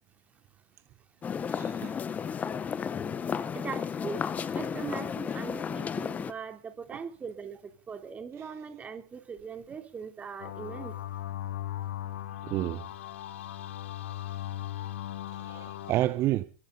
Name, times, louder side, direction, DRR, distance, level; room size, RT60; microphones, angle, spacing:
sound 1, 1.2-6.3, left 7 dB, 20° left, 1.3 m, -33 dB
voice 1, 1.5-2.0 6.9-7.0 8.4-8.5 12.4-12.9 15.4-16.4, right 15 dB, 40° right, 1.1 m, -30 dB
voice 2, 3.5-4.2 4.5-11.0, right 6 dB, 20° right, 3.5 m, -40 dB
sound 2, 10.4-15.9, left 12 dB, 70° left, 1.6 m, -38 dB
23.0 x 13.5 x 4.1 m
hypercardioid pair, 100°, 7 cm